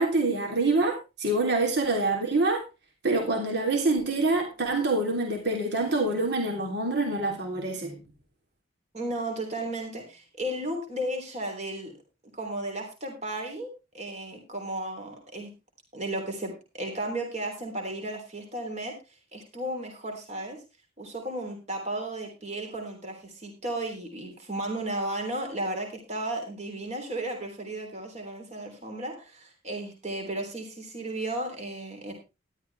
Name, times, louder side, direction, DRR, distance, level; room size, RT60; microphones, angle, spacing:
voice 1, 0.0-2.6 3.0-8.0, right 2 dB, 55° right, 3.2 m, -26 dB
voice 2, 8.9-11.9 12.3-15.5 15.9-19.0 19.3-20.6 21.0-32.1, right 1 dB, 35° right, 3.3 m, -34 dB
12.5 x 11.5 x 3.4 m
head